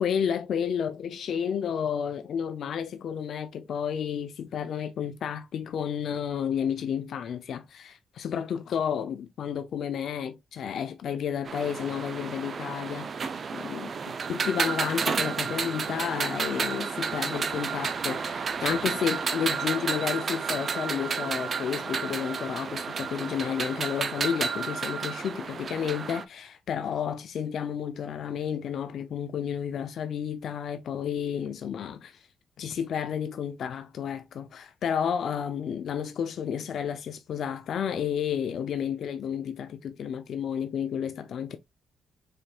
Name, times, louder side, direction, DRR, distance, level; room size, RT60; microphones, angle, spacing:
voice 1, 0.0-13.3 13.5-32.2 32.6-41.6, left 8 dB, 65° left, 0.6 m, -31 dB
sound 1, 11.5-26.2, right 5 dB, 40° right, 0.6 m, -31 dB
5.1 x 4.3 x 2.4 m
cardioid pair, 125°, 0 cm